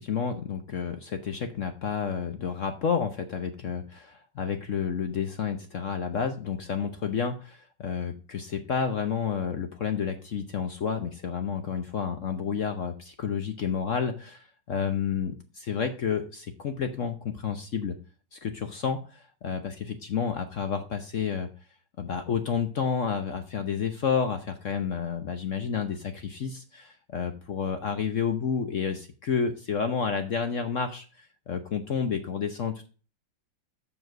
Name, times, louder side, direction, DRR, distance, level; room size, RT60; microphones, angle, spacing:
voice 1, 0.0-18.0 18.3-21.5 22.0-32.9, left 6 dB, 55° left, 7 dB, 0.9 m, -30 dB
7.1 x 6.3 x 6.4 m, 0.37 s
omnidirectional pair, 2.1 m